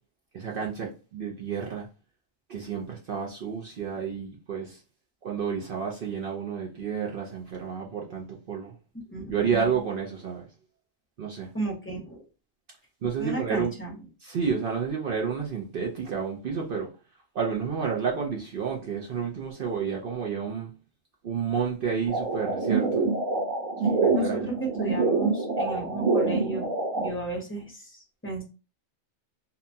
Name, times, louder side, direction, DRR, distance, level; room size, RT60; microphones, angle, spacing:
voice 1, 0.3-1.9 2.5-4.8 5.2-8.7 9.3-10.5 11.2-11.5 13.0-13.7 14.2-16.9 17.3-20.7 21.2-23.1 23.9-24.5, right 6 dB, 60° right, 0.6 m, -30 dB
voice 2, 9.1-9.8 11.5-12.3 13.2-13.9 24.1-26.7 27.0-28.4, right 2 dB, 10° left, 0.7 m, -34 dB
sound 1, 22.1-27.1, right 3 dB, 90° right, 1.2 m, -26 dB
2.8 x 2.2 x 2.6 m
omnidirectional pair, 1.4 m